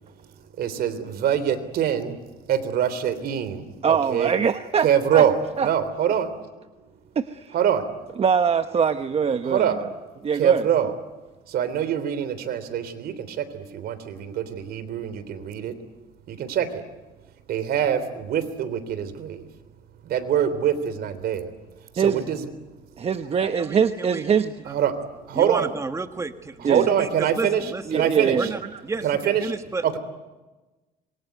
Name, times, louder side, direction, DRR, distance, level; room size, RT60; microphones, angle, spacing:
voice 1, 0.6-2.2 2.5-4.3 4.8-6.3 7.5-7.8 9.4-9.8 10.3-10.9 11.5-15.7 16.3-16.7 17.5-19.4 20.0-21.5 22.0-22.5 23.3-23.5 24.7-24.9 25.3-25.7 26.6-28.5 29.0-29.5 29.8-30.0, right 9 dB, 65° right, 12 dB, 3.5 m, -24 dB
voice 2, 3.8-5.2 5.6-5.7 7.2-7.4 8.2-9.7 10.2-10.7 22.0-22.2 23.0-24.5 26.6-26.9 27.9-28.8, right 6 dB, 35° right, 9 dB, 1.1 m, -23 dB
voice 3, 23.5-24.2 25.3-27.8 28.3-30.0, right 3 dB, 15° right, 8 dB, 1.4 m, -31 dB
26.5 x 23.5 x 9.4 m, 1.2 s
cardioid pair, 110°, 17 cm